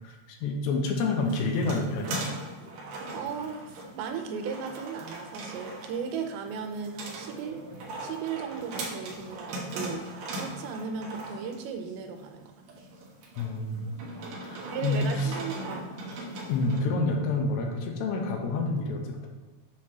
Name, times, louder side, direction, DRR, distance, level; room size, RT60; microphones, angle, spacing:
voice 1, 0.0-2.3 13.4-14.0 14.4-15.4 16.5-19.3, left 3 dB, 85° left, 2 dB, 3.0 m, -28 dB
sound 1, 0.9-16.8, right 2 dB, 70° right, 2.0 m, -40 dB
voice 2, 3.1-7.7 8.0-12.5 14.5-15.9, right 6 dB, 90° right, 5 dB, 2.9 m, -36 dB
7.2 x 3.2 x 5.8 m, 1.2 s
omnidirectional pair, 5.0 m